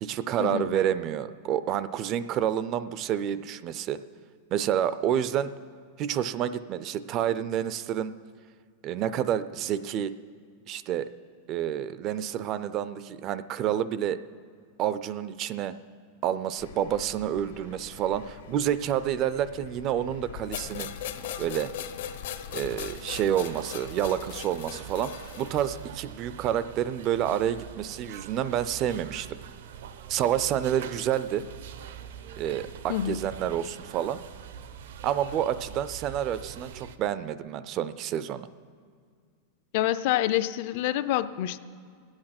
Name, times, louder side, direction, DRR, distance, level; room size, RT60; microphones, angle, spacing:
voice 1, 0.0-4.0 4.5-5.5 6.0-8.1 8.8-10.1 10.7-11.1 11.5-14.2 14.8-15.7 16.2-20.9 21.4-21.7 22.5-25.1 25.4-29.4 30.1-31.4 32.4-34.2 35.0-38.5, right 10 dB, 30° right, 14 dB, 0.4 m, -29 dB
Thunder, 16.6-22.9, left 7 dB, 90° left, 1.7 m, -46 dB
sound 1, 20.5-25.9, left 10 dB, 70° left, 0.9 m, -39 dB
sound 2, 22.7-37.0, right 8 dB, 75° right, 0.7 m, -44 dB
voice 2, 32.9-33.2 39.7-41.6, left 13 dB, 50° left, 14 dB, 0.4 m, -27 dB
20.5 x 8.8 x 5.9 m, 2.1 s
supercardioid pair, 165°, 0 cm